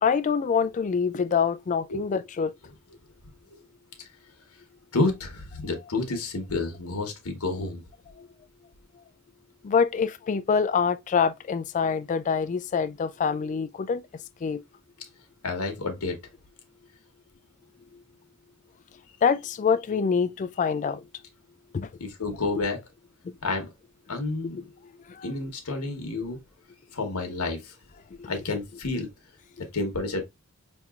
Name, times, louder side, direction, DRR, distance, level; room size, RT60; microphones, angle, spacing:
voice 1, 0.0-2.5 8.2-8.3 9.6-14.0 14.4-14.6 19.2-21.0 21.7-21.9 25.1-25.3 28.2-28.3, left 6 dB, 35° left, 0.3 m, -25 dB
voice 2, 4.9-7.8 15.4-16.2 22.0-22.8 23.4-23.7 24.1-24.6 25.2-26.4 26.9-27.7 28.3-29.1 29.7-30.2, left 3 dB, 80° left, 1.1 m, -29 dB
5.3 x 2.9 x 2.4 m
head